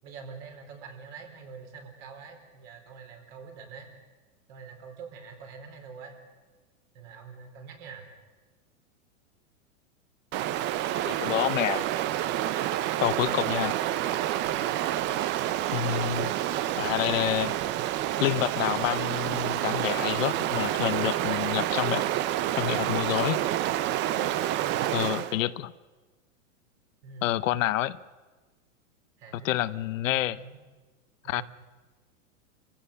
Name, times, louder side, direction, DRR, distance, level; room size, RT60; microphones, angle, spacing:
voice 1, 0.0-3.9 4.5-6.1 6.9-8.1 12.8-13.2 14.4-14.8 24.1-25.6 27.0-27.5 29.2-30.6 31.2-31.4, right 5 dB, 45° right, 3 dB, 4.5 m, -45 dB
Stream, 10.3-25.4, right 13 dB, 25° right, 0.6 m, -28 dB
voice 2, 11.1-11.8 13.0-13.7 15.7-16.3 16.8-17.6 18.2-22.1 22.6-23.4 24.9-25.7 27.2-28.0 29.3-30.4 31.3-31.4, left 14 dB, 65° left, 15 dB, 0.8 m, -28 dB
27.5 x 16.0 x 6.8 m, 1.3 s
hypercardioid pair, 140°, 42 cm